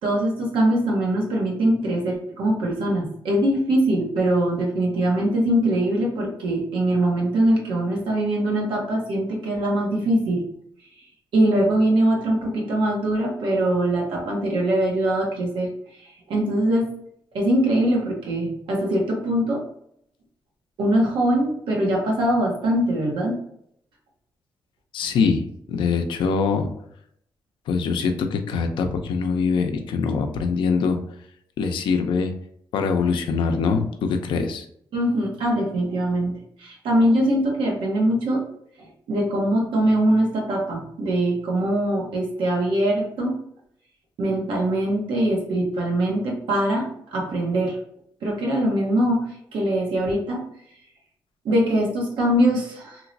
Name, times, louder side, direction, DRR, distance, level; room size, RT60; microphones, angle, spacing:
voice 1, 0.0-10.4 11.3-15.7 16.0-16.9 17.3-19.6 20.8-23.4 34.9-38.4 38.8-43.4 44.2-47.8 48.2-50.4 51.4-53.0, right 1 dB, 85° right, -1 dB, 1.1 m, -22 dB
voice 2, 24.9-26.7 27.7-31.0 31.6-32.3 32.7-34.7, left 5 dB, 80° left, 6 dB, 0.5 m, -23 dB
3.0 x 2.9 x 2.6 m, 0.69 s
cardioid pair, 115°, 8 cm